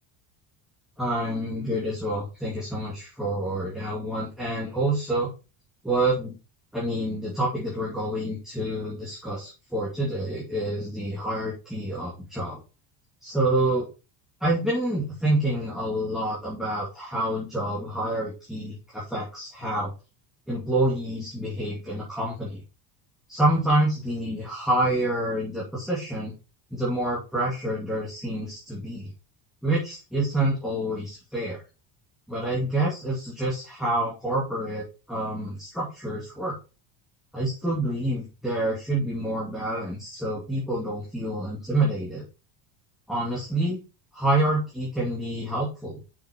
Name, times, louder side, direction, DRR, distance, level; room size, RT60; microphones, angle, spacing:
voice 1, 1.0-5.3 5.8-6.3 6.7-12.6 13.2-13.9 14.4-19.9 20.5-22.6 23.3-26.3 26.7-29.1 29.6-31.6 32.3-36.6 37.3-42.2 43.1-43.8 44.1-46.0, right 1 dB, ahead, -7 dB, 2.7 m, -27 dB
7.3 x 6.6 x 3.7 m, 0.31 s
cardioid pair, 170°, 45 cm